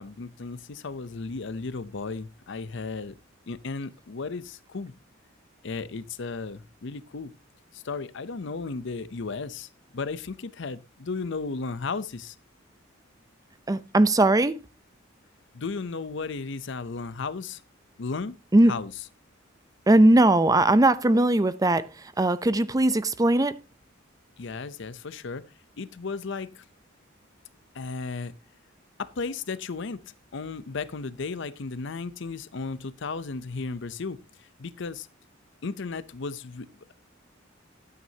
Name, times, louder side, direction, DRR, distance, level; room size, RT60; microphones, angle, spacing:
voice 1, 0.0-3.2 3.5-4.9 5.6-7.3 7.7-12.3 15.5-17.6 18.0-18.4 18.7-18.9 24.4-25.5 25.8-26.6 27.7-28.3 29.0-30.0 30.3-34.2 34.6-35.1 35.6-36.7, left 4 dB, 65° left, 0.6 m, -34 dB
voice 2, 13.7-14.5 18.5-18.7 19.9-21.9 22.2-23.5, right 1 dB, 20° right, 0.5 m, -19 dB
12.0 x 9.3 x 2.8 m
head